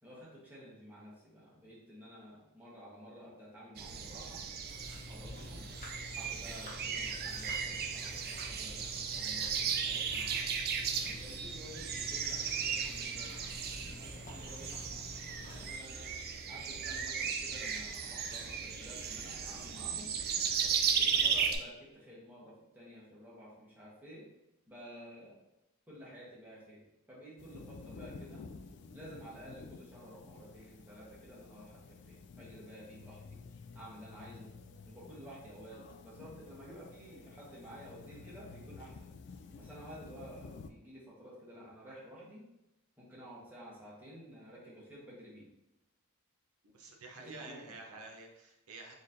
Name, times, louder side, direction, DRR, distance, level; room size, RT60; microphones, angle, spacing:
voice 1, 0.0-4.4 5.1-5.7 6.1-10.3 11.0-14.7 15.4-16.2 16.5-20.1 20.6-24.2 24.7-25.4 25.9-26.8 27.1-28.4 28.9-33.4 33.7-34.5 34.8-39.1 39.6-42.5 43.0-45.5 47.1-48.0, equal, 10° right, -7 dB, 1.4 m, -52 dB
sound 1, 3.8-21.6, right 6 dB, 45° right, 0.4 m, -36 dB
sound 2, 4.7-15.7, left 2 dB, 35° left, 0.8 m, -50 dB
sound 3, 27.4-40.7, left 4 dB, 55° left, 0.3 m, -52 dB
voice 2, 46.6-48.9, right 3 dB, 75° right, 1 dB, 0.7 m, -49 dB
3.9 x 3.2 x 2.7 m, 0.91 s
head